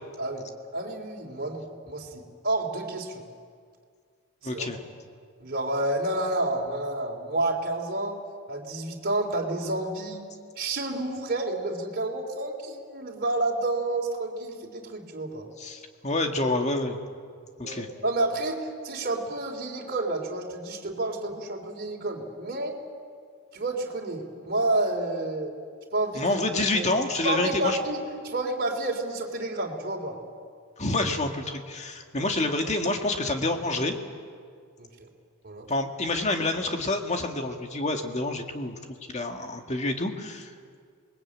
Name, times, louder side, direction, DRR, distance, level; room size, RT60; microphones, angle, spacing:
voice 1, 0.2-3.2 4.5-4.7 5.4-10.2 10.6-15.5 17.6-22.8 23.5-25.5 25.9-26.2 26.7-26.9 27.2-30.2 32.2-32.3 34.8-35.1 35.4-35.7, right 2 dB, 45° right, 0 dB, 3.4 m, -30 dB
voice 2, 4.4-4.8 15.6-17.0 17.6-17.9 26.1-27.8 30.8-34.0 35.7-38.8 39.1-40.5, left 2 dB, 30° left, 4 dB, 2.0 m, -28 dB
27.5 x 21.0 x 8.8 m, 2.1 s
head